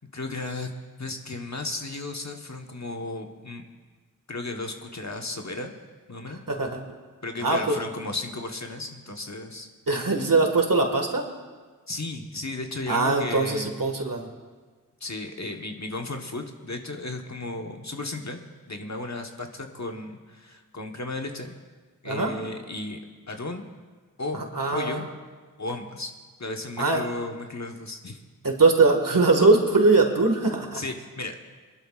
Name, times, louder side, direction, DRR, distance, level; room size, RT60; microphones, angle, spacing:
voice 1, 0.1-0.7 1.0-3.7 4.3-5.7 6.1-6.4 7.2-9.7 11.9-13.9 15.0-18.4 18.7-21.5 22.0-23.0 23.3-23.6 24.2-24.4 24.7-25.1 25.6-26.1 26.4-28.2 30.7-31.4, left 2 dB, 50° left, 4 dB, 1.2 m, -34 dB
voice 2, 6.5-6.8 7.4-7.8 9.9-11.2 12.9-14.3 22.1-22.3 24.3-25.0 26.8-27.0 28.4-30.8, right 3 dB, 70° right, 3 dB, 1.7 m, -21 dB
24.0 x 11.5 x 2.4 m, 1.4 s
wide cardioid pair, 40°, 34 cm